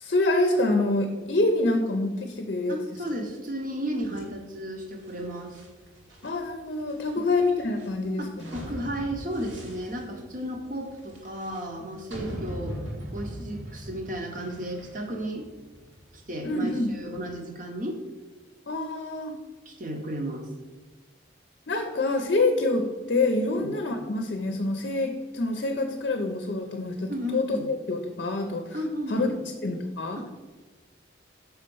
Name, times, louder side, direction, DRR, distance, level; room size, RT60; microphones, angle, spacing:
voice 1, 0.0-2.8 6.2-8.6 16.4-16.9 18.7-19.4 21.7-28.8 29.1-30.2, left 2 dB, 55° left, 4 dB, 0.6 m, -26 dB
voice 2, 2.7-5.6 8.2-12.8 13.1-15.5 16.3-18.0 19.7-20.5 23.5-23.7 27.1-27.7 28.7-29.4 30.2-30.3, equal, 40° right, 4 dB, 0.9 m, -34 dB
sound 1, 4.0-17.2, right 1 dB, 70° right, 1.4 m, -42 dB
5.8 x 4.3 x 5.4 m, 1.3 s
head